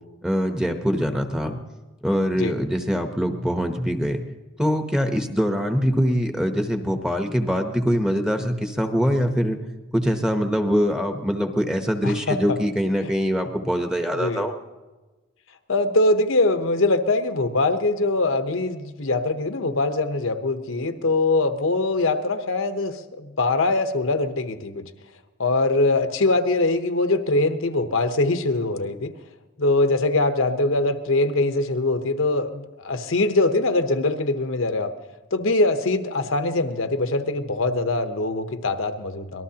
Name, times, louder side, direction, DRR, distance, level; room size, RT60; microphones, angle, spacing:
voice 1, 0.2-1.6 2.0-4.2 4.6-9.6 9.9-14.5, equal, 5° right, 5 dB, 0.8 m, -23 dB
voice 2, 12.0-12.6 14.1-14.5 15.7-24.9 25.4-29.1 29.6-34.9 35.3-39.4, left 2 dB, 75° left, 8 dB, 0.9 m, -22 dB
24.5 x 19.0 x 2.9 m, 1.2 s
head